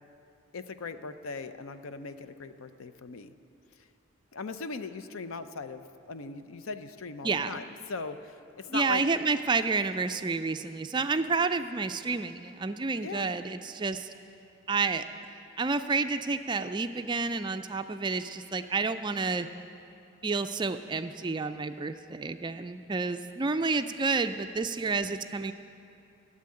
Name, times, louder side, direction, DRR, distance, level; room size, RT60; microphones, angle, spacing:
voice 1, 0.5-3.3 4.3-9.0 13.0-13.3, left 4 dB, 75° left, 11 dB, 0.6 m, -39 dB
voice 2, 7.2-7.6 8.7-14.1 14.7-19.5 20.2-25.5, right 4 dB, 20° right, 9 dB, 0.3 m, -30 dB
14.0 x 7.5 x 9.7 m, 2.7 s
head